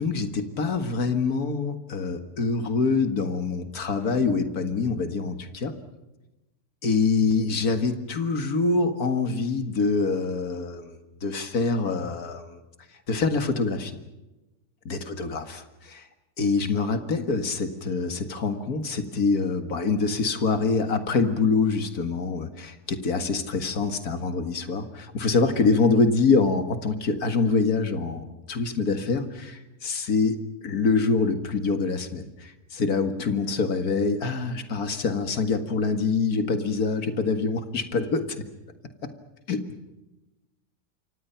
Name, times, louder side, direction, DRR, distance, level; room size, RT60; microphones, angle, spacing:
voice 1, 0.0-5.7 6.8-12.6 13.1-13.9 14.9-16.1 16.4-38.3 39.5-39.6, left 4 dB, 75° left, 7 dB, 2.3 m, -25 dB
28.0 x 25.0 x 5.8 m, 1.0 s
omnidirectional pair, 1.6 m